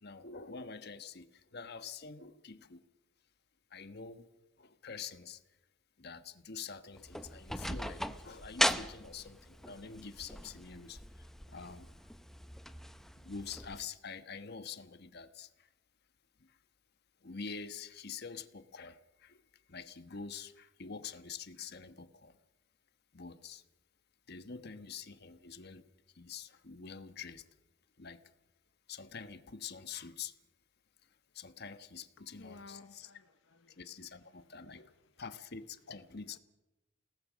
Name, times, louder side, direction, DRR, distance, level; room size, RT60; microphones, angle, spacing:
voice 1, 0.0-2.8 3.7-5.4 6.0-11.0 11.5-11.9 13.2-15.7 17.2-19.4 19.7-22.3 23.1-23.6 24.3-25.8 26.1-27.4 28.0-28.2 28.9-30.3 31.3-33.1 33.8-34.9 35.2-36.4, left 5 dB, 55° left, 1.3 m, -46 dB
sound 1, 6.9-13.8, equal, ahead, 0.8 m, -38 dB
voice 2, 32.2-33.9 34.3-35.0 36.3-36.4, left 3 dB, 75° left, 1.0 m, -56 dB
29.0 x 19.0 x 6.3 m
head